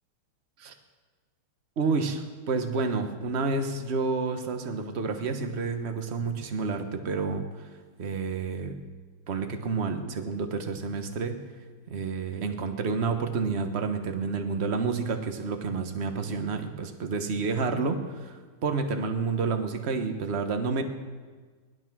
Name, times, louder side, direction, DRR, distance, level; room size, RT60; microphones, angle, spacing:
voice 1, 1.8-7.4 8.0-8.8 9.3-11.4 11.9-20.8, right 4 dB, 40° right, 6 dB, 1.2 m, -29 dB
18.5 x 11.5 x 6.1 m, 1.5 s
omnidirectional pair, 2.3 m